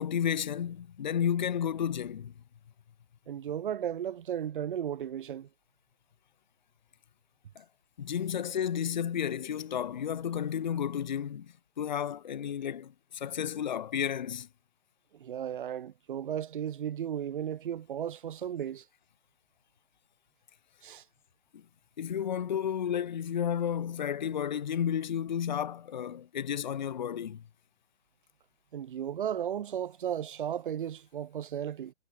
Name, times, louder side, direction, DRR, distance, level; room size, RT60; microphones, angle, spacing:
voice 1, 0.0-2.3 7.6-7.7 8.0-14.5 21.5-21.6 22.0-27.4, left 9 dB, 35° left, 0.9 m, -32 dB
voice 2, 3.3-5.5 15.1-18.8 20.8-21.0 28.7-31.9, right 9 dB, 40° right, 4.4 m, -35 dB
hypercardioid pair, 165°, 39 cm